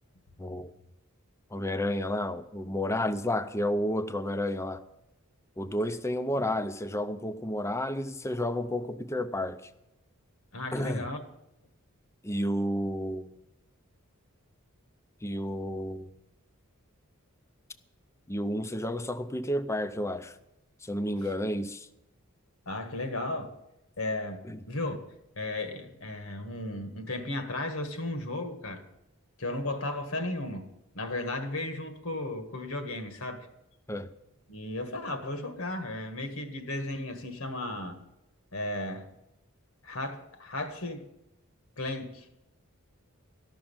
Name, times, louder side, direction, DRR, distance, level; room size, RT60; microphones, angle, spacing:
voice 1, 0.4-0.7 1.5-4.8 5.6-9.6 10.7-11.1 12.2-13.3 15.2-16.1 18.3-20.4 20.8-21.9 24.4-24.6 33.9-34.1, left 1 dB, 15° left, 0.6 m, -31 dB
voice 2, 10.5-11.3 22.6-23.5 24.0-25.0 25.4-28.8 29.4-33.5 34.5-38.0 38.5-39.1 39.8-41.1 41.8-42.3, left 2 dB, 75° left, 1.6 m, -35 dB
13.0 x 6.2 x 8.7 m
head